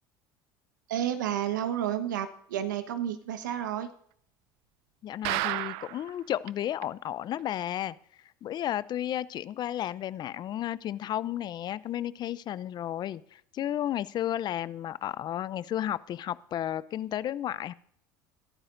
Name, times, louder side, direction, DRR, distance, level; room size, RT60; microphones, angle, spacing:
voice 1, 0.9-3.9, right 10 dB, 90° right, 9 dB, 1.2 m, -31 dB
voice 2, 5.0-8.0 8.4-17.7, left 11 dB, 45° left, 18 dB, 0.6 m, -33 dB
sound 1, 5.2-6.1 6.5-6.6 6.8-6.9 7.4-7.5, right 19 dB, 70° right, 0.4 m, -31 dB
21.5 x 12.0 x 2.6 m, 0.64 s
hypercardioid pair, 80°, 10 cm